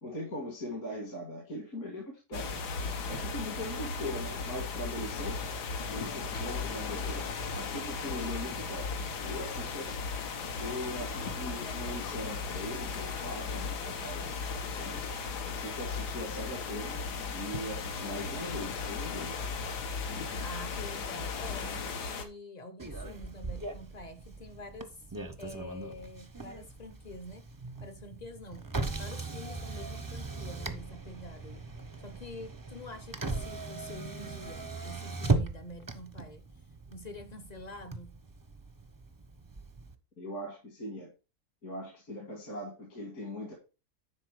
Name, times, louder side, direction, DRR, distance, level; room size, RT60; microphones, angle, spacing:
voice 1, 0.0-2.6 3.1-5.5 5.9-7.2 7.5-9.9 10.6-14.3 14.6-15.0 15.5-17.0 17.3-19.5 40.2-41.1 41.6-43.5, left 1 dB, 65° left, 2.4 m, -40 dB
sound 1, 2.3-22.2, left 4 dB, 90° left, 1.6 m, -36 dB
voice 2, 20.4-25.0 25.4-27.5 27.8-28.7 29.0-31.7 32.0-36.5 36.9-38.2, left 1 dB, 45° left, 0.5 m, -46 dB
Motor vehicle (road), 22.8-39.9, right 3 dB, 30° right, 0.3 m, -38 dB
9.9 x 4.1 x 4.7 m
omnidirectional pair, 1.7 m